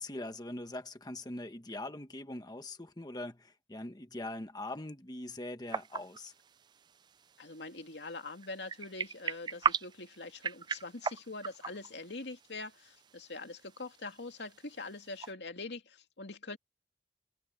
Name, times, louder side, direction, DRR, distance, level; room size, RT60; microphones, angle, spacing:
voice 1, 0.0-6.3, left 2 dB, 25° left, 1.3 m, -42 dB
sound 1, 5.7-15.3, right 6 dB, 25° right, 0.3 m, -40 dB
voice 2, 7.4-16.6, left 3 dB, 80° left, 2.3 m, -44 dB
head